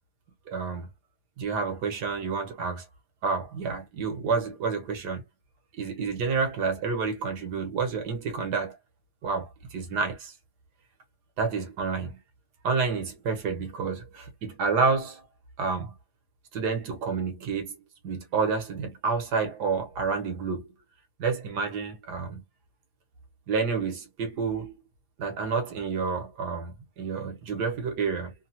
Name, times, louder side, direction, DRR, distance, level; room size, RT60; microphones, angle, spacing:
voice 1, 0.5-0.9 1.4-2.8 3.2-5.2 5.8-8.8 9.2-10.3 11.4-12.2 12.6-15.2 15.6-15.9 16.5-17.8 18.0-20.7 21.2-22.4 23.5-24.8 25.2-28.3, right 5 dB, 85° right, 1.5 m, -29 dB
3.3 x 2.0 x 2.7 m
omnidirectional pair, 1.7 m